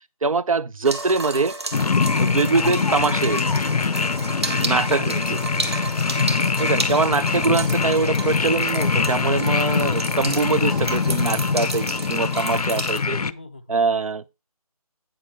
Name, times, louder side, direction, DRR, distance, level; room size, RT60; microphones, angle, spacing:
voice 1, 0.2-1.5 2.2-3.4 4.6-5.2 6.6-13.2 13.7-14.2, right 4 dB, 60° right, 0.7 m, -23 dB
sound 1, 0.8-13.0, right 3 dB, 45° right, 1.3 m, -32 dB
sound 2, 1.7-13.3, left 5 dB, 80° left, 0.6 m, -23 dB
voice 2, 4.7-5.8 6.3-6.9 13.2-13.8, left 2 dB, 20° left, 0.5 m, -41 dB
8.8 x 7.0 x 4.4 m
figure-of-eight pair, 170°, 19 cm